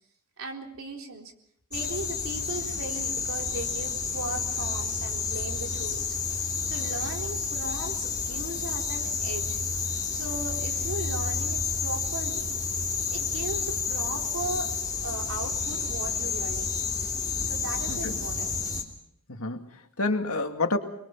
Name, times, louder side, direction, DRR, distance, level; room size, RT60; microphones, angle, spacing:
voice 1, 0.4-1.3 1.7-6.2 6.6-9.6 10.1-12.6 13.1-14.7 15.0-17.1 17.4-18.5, right 2 dB, 60° right, 2 dB, 3.9 m, -37 dB
sound 1, 1.7-18.8, left 5 dB, 15° left, 3.1 m, -30 dB
voice 2, 17.9-18.2 19.3-20.8, left 2 dB, 70° left, 5 dB, 2.3 m, -29 dB
26.0 x 22.5 x 5.8 m, 0.72 s
head